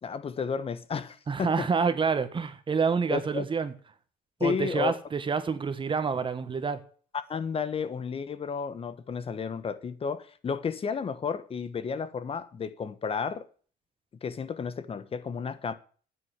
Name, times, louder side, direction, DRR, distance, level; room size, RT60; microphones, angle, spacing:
voice 1, 0.0-1.7 3.1-3.4 4.4-4.9 7.3-13.5 14.2-15.7, left 6 dB, 35° left, 1.2 m, -32 dB
voice 2, 1.3-3.7 4.4-6.8, right 5 dB, 30° right, 1.5 m, -28 dB
9.5 x 8.0 x 8.1 m
cardioid pair, 110°, 17 cm